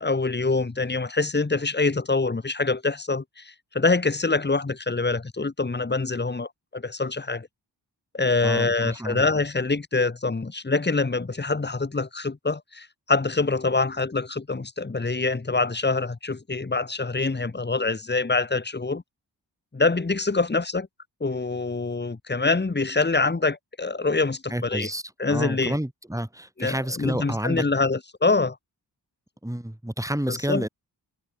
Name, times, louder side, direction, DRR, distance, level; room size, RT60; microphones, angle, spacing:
voice 1, 0.0-7.5 8.1-19.0 19.7-20.9 21.2-24.9 25.2-25.8 26.6-28.6 30.3-30.7, left 3 dB, 25° left, 1.6 m, -25 dB
voice 2, 8.4-9.2 24.5-25.0 25.3-27.6 29.4-30.7, right 1 dB, 10° right, 7.2 m, -30 dB
wide cardioid pair, 95°, 41 cm